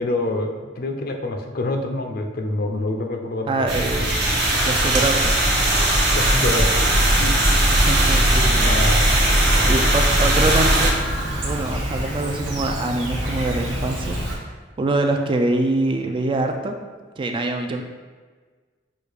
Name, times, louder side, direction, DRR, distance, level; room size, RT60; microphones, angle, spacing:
voice 1, 0.0-3.7 6.1-6.9 7.1-7.4 8.6-9.2, left 2 dB, 55° left, 4 dB, 0.5 m, -26 dB
voice 2, 3.5-4.2 4.6-5.4 7.7-8.9 9.4-16.8 17.2-17.8, right 2 dB, 25° right, 4 dB, 0.3 m, -25 dB
sound 1, 3.7-10.9, right 1 dB, 60° right, 0.9 m, -18 dB
Chirp tweet, 6.8-14.4, right 1 dB, 80° right, 1.1 m, -28 dB
6.2 x 2.4 x 3.4 m, 1.4 s
head